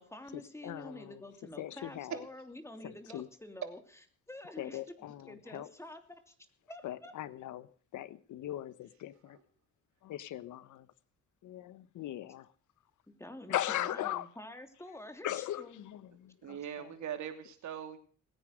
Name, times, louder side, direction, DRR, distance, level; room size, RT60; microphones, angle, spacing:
voice 1, 0.0-3.8 4.3-4.8 5.3-6.3 6.7-7.1 13.1-15.8, left 1 dB, 10° left, 2.9 m, -48 dB
voice 2, 0.6-1.2 1.6-2.2 2.8-3.3 4.6-5.7 6.8-7.7 7.9-9.4 10.0-10.9 11.4-12.5 13.5-14.3 15.2-16.9, left 13 dB, 80° left, 1.2 m, -39 dB
voice 3, 16.4-18.0, right 9 dB, 70° right, 2.9 m, -41 dB
20.0 x 9.7 x 6.6 m
cardioid pair, 90°, 30 cm